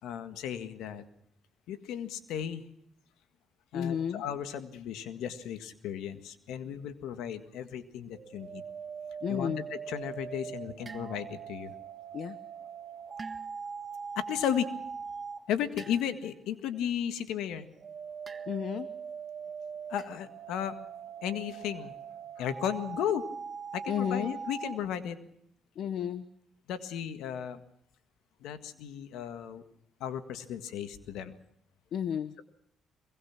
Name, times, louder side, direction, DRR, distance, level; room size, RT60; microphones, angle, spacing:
voice 1, 0.0-1.0 1.7-2.6 3.7-8.6 9.3-11.7 14.1-14.7 15.5-17.6 19.9-20.8 21.2-21.9 22.4-23.3 23.7-25.2 26.7-27.6 28.4-29.6 30.0-31.3, left 9 dB, 90° left, 10 dB, 1.7 m, -35 dB
voice 2, 3.7-4.2 9.2-9.7 12.1-12.4 18.5-18.9 23.9-24.3 25.8-26.2 31.9-32.3, left 8 dB, 70° left, 12 dB, 1.0 m, -32 dB
sound 1, 8.1-15.5 17.5-24.8, right 6 dB, 45° right, 3.0 m, -41 dB
sound 2, 10.9-11.6 13.2-13.8 15.8-16.4 18.3-18.9 20.0-20.2, right 3 dB, 30° right, 1.5 m, -48 dB
23.0 x 22.0 x 5.9 m, 0.72 s
cardioid pair, 90°, 0 cm